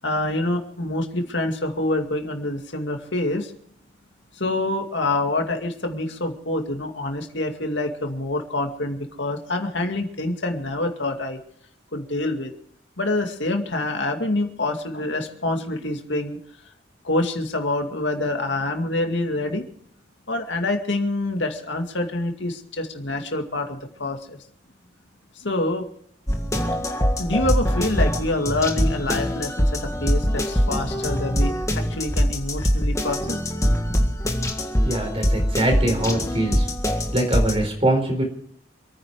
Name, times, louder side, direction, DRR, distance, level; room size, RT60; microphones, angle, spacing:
voice 1, 0.0-3.5 4.3-11.4 11.9-12.5 13.0-16.4 17.0-19.7 20.3-24.4 25.4-25.8 27.2-33.6, left 2 dB, 65° left, 4 dB, 2.3 m, -26 dB
sound 1, 26.3-37.6, equal, 15° left, 1.7 m, -23 dB
voice 2, 34.8-36.7 37.1-38.2, right 1 dB, 30° right, 4 dB, 4.5 m, -23 dB
27.0 x 9.8 x 4.9 m, 0.64 s
head